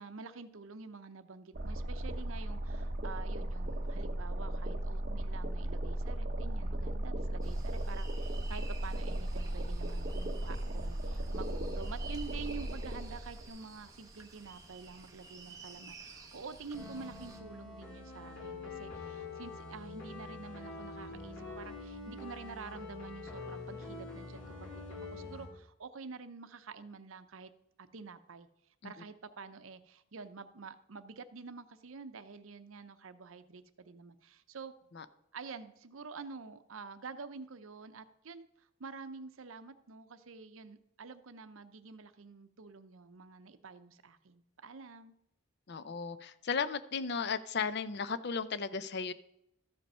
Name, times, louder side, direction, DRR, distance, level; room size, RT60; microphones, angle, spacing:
voice 1, 0.0-27.5 27.8-28.5 28.8-34.7 35.3-45.1, right 4 dB, 70° right, 12 dB, 0.7 m, -48 dB
sound 1, 1.5-13.5, right 1 dB, 40° right, 1.0 m, -36 dB
sound 2, 7.4-17.4, right 4 dB, 15° right, 0.9 m, -53 dB
sound 3, 16.7-25.5, left 3 dB, 70° left, 3.0 m, -45 dB
voice 2, 45.7-49.1, left 5 dB, 50° left, 13 dB, 0.5 m, -35 dB
13.5 x 5.3 x 5.5 m, 0.81 s
head